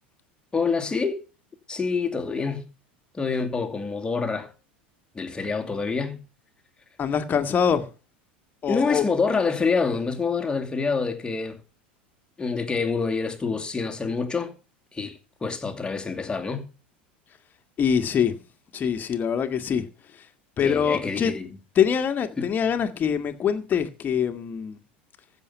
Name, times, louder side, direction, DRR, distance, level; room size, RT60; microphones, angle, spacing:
voice 1, 0.5-1.2 1.7-2.6 3.1-4.5 5.1-6.2 8.7-11.6 12.4-14.5 14.9-16.7 20.6-21.6 22.4-22.5, left 4 dB, 15° left, 2.5 m, -27 dB
voice 2, 7.0-7.9 8.6-9.0 17.8-18.3 18.7-19.9 20.6-21.3 21.8-24.8, left 7 dB, 35° left, 1.9 m, -24 dB
15.0 x 6.7 x 5.8 m
hypercardioid pair, 85°, 6 cm